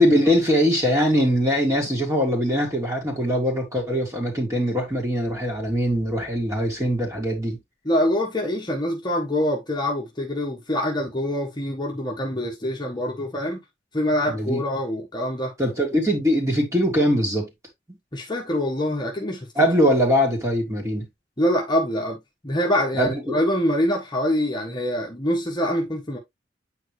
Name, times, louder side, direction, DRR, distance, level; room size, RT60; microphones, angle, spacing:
voice 1, 0.0-7.6 14.3-14.6 15.6-17.5 17.9-18.0 19.5-21.1 22.9-23.4, equal, 15° right, 3.4 m, -22 dB
voice 2, 7.8-13.6 13.9-15.5 18.1-19.6 21.4-22.2 22.4-26.2, left 1 dB, 25° left, 1.4 m, -25 dB
9.2 x 4.4 x 3.2 m
head